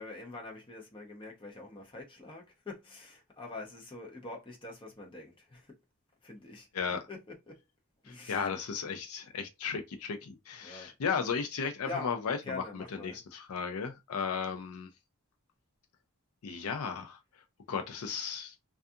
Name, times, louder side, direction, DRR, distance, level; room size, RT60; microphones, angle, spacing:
voice 1, 0.0-5.7 6.2-6.7 7.1-7.2 7.5-7.6 8.0-8.5 10.6-10.9 11.8-12.1 12.4-13.2, left 3 dB, 25° left, 0.7 m, -44 dB
voice 2, 8.1-14.9 16.4-17.2 17.7-18.5, left 6 dB, 75° left, 0.5 m, -35 dB
2.4 x 2.3 x 2.6 m
head